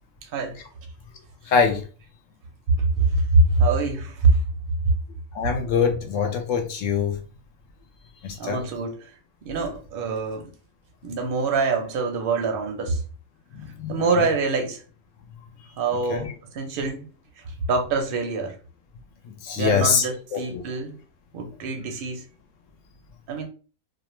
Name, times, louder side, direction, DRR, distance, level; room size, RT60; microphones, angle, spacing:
voice 1, 0.2-0.6 2.7-4.3 4.8-4.9 8.4-9.1 9.4-10.5 11.0-13.0 13.9-14.8 15.8-17.1 17.4-18.6 19.6-21.0 21.3-22.3 23.3-23.5, right 3 dB, 55° right, 0.6 m, -24 dB
voice 2, 1.5-1.8 5.3-7.2 8.2-8.6 13.5-14.3 16.1-16.3 19.2-20.0 20.3-20.6, left 6 dB, 70° left, 0.9 m, -24 dB
2.4 x 2.1 x 3.0 m
omnidirectional pair, 1.5 m